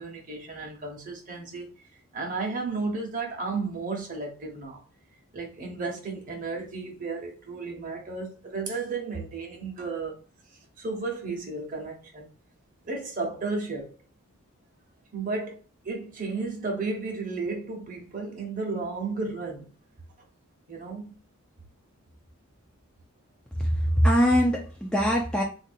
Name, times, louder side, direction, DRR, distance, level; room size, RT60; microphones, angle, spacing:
voice 1, 0.0-1.7 2.1-4.8 5.3-10.2 10.8-12.3 12.8-13.9 15.1-15.6 15.8-19.7 20.7-21.1, right 3 dB, 35° right, 0.9 m, -33 dB
voice 2, 23.6-25.4, equal, 5° left, 0.4 m, -22 dB
3.9 x 2.6 x 2.5 m
head